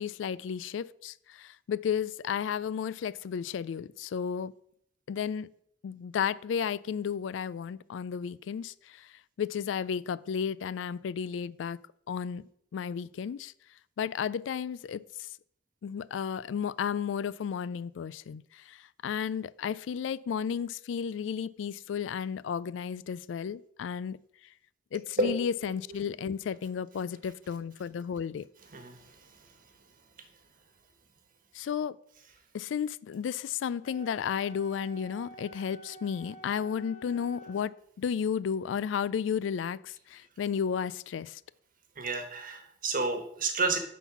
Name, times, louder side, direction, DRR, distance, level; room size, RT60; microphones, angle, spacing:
voice 1, 0.0-4.5 5.1-5.5 5.8-9.1 9.4-11.8 12.1-12.5 12.7-13.5 14.0-15.0 15.8-24.2 24.9-28.5 31.5-32.0 32.5-37.7 38.0-41.4, left 7 dB, 80° left, 0.3 m, -33 dB
voice 2, 25.6-26.0 28.7-29.1 42.0-43.8, right 3 dB, 50° right, 1.3 m, -31 dB
Wind instrument woodwind instrument, 33.8-37.7, equal, 40° left, 1.4 m, -49 dB
9.9 x 4.1 x 5.9 m
head